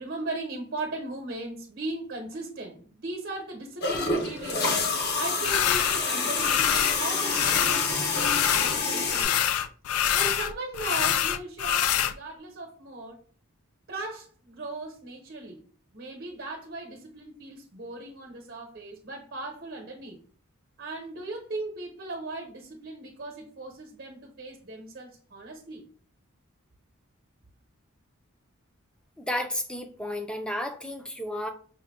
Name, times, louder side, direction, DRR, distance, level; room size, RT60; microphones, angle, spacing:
voice 1, 0.0-9.4 10.1-13.2 13.9-15.6 15.9-20.2 20.8-25.8, right 2 dB, 50° right, 0.9 m, -38 dB
sound 1, 3.8-9.2, left 4 dB, 50° left, 0.7 m, -27 dB
sound 2, 5.4-6.0 6.4-7.0 7.3-8.8 9.1-12.1, left 10 dB, 85° left, 0.4 m, -25 dB
voice 2, 29.2-31.5, left 1 dB, 5° left, 0.5 m, -32 dB
5.6 x 2.2 x 3.5 m
head